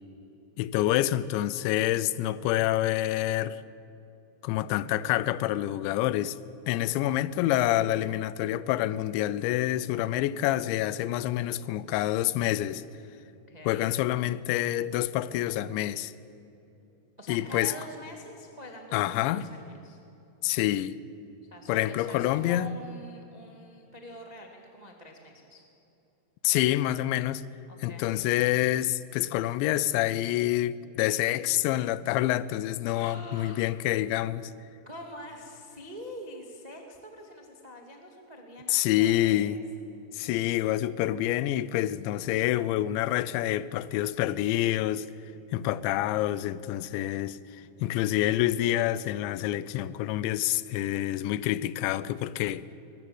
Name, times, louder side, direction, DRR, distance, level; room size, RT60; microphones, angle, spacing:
voice 1, 0.6-3.6 4.4-6.4 6.7-12.8 13.7-16.1 17.3-17.7 18.9-19.4 20.4-21.0 21.7-22.7 26.4-27.4 27.8-34.5 38.7-39.6 40.1-45.1 45.5-47.4 47.8-52.7, left 14 dB, 85° left, 3.0 m, -27 dB
voice 2, 13.5-13.8 17.2-20.0 21.5-25.6 27.7-28.1 32.9-33.7 34.8-39.6 47.4-47.8, left 1 dB, 40° right, 0.5 m, -45 dB
21.5 x 21.5 x 7.9 m
omnidirectional pair, 5.2 m